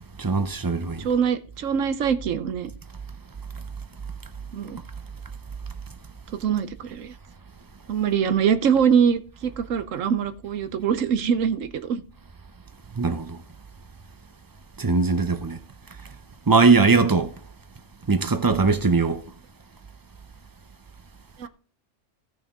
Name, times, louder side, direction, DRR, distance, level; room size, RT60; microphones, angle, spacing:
voice 1, 0.2-1.1 13.0-13.4 14.8-15.6 16.5-17.3 18.1-19.2, right 4 dB, 30° right, 0.4 m, -20 dB
voice 2, 1.0-2.7 4.5-4.8 6.4-7.1 7.9-12.0 21.4-21.5, right 7 dB, 90° right, 1.2 m, -23 dB
16.0 x 6.2 x 3.7 m
omnidirectional pair, 1.3 m